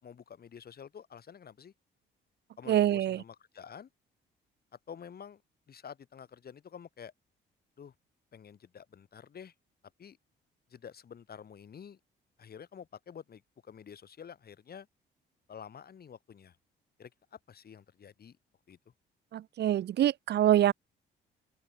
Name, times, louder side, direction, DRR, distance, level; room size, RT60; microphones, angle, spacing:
voice 1, 0.0-1.7 2.6-3.9 4.9-5.4 5.7-7.1 7.8-7.9 8.3-9.5 10.0-10.2 10.7-12.0 12.4-14.9 15.5-16.6 17.0-18.4 18.7-18.8, left 7 dB, 50° left, 5.2 m, -49 dB
voice 2, 2.7-3.2 19.3-20.7, right 12 dB, 60° right, 0.6 m, -25 dB
open air
cardioid pair, 90°, 20 cm